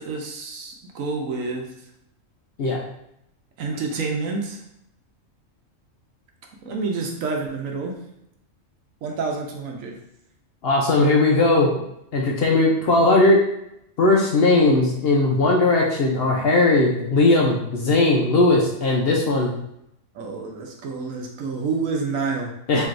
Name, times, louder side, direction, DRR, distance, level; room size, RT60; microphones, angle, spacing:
voice 1, 0.0-1.7 3.6-4.6 6.6-8.1 9.0-10.0 20.1-22.6, right 4 dB, 75° right, 1 dB, 1.1 m, -28 dB
voice 2, 10.6-11.7 12.1-13.4 14.0-19.5 22.7-22.8, left 2 dB, 60° left, -2 dB, 0.7 m, -18 dB
4.4 x 3.0 x 2.5 m, 0.78 s
omnidirectional pair, 1.4 m